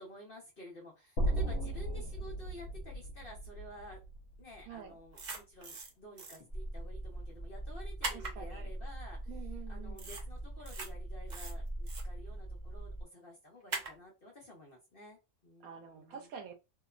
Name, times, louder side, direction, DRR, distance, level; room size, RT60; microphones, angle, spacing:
voice 1, 0.0-4.0 4.4-9.2 9.7-16.3, equal, 50° left, -2 dB, 0.8 m, -52 dB
sound 1, 1.2-5.3, right 1 dB, 75° left, 1.0 m, -36 dB
voice 2, 1.3-2.0 4.6-5.0 8.1-8.7 9.3-10.1 15.6-16.5, right 7 dB, 75° right, 3 dB, 1.1 m, -48 dB
sound 2, 5.1-5.9 6.2-6.4 8.0-8.3 10.0-10.2 10.6-10.9 11.3-12.0 13.7-13.9, right 4 dB, 55° right, 0.5 m, -40 dB
sound 3, 6.5-13.0, right 1 dB, 10° left, 1.1 m, -42 dB
2.8 x 2.1 x 2.3 m, 0.26 s
omnidirectional pair, 1.6 m